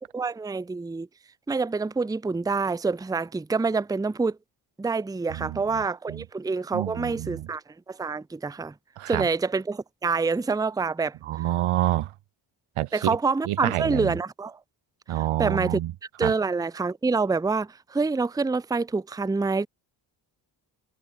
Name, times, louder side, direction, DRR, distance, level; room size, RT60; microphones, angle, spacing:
voice 1, 0.1-1.1 1.5-4.4 4.8-7.6 7.9-8.7 9.1-11.2 12.9-14.5 15.4-15.8 16.2-19.7, right 4 dB, 10° right, 0.6 m, -26 dB
voice 2, 5.3-5.8 6.1-6.2 6.7-7.5 9.0-9.3 11.2-12.1 12.8-13.2 13.4-14.2 15.1-15.9 16.2-16.3, right 14 dB, 80° right, 1.1 m, -28 dB
supercardioid pair, 50°, 50 cm